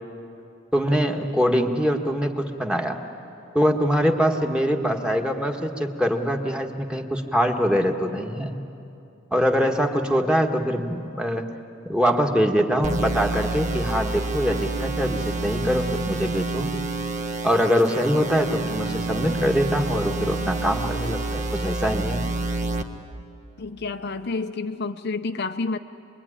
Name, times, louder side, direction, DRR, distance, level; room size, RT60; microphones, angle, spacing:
voice 1, 0.7-3.0 3.6-8.5 9.3-11.5 11.9-16.7 17.4-22.2, equal, 5° right, 3 dB, 1.6 m, -23 dB
sound 1, 12.8-22.8, right 2 dB, 35° right, 1.3 m, -28 dB
voice 2, 23.6-25.8, left 3 dB, 55° left, 7 dB, 0.7 m, -29 dB
27.5 x 22.0 x 10.0 m, 2.6 s
head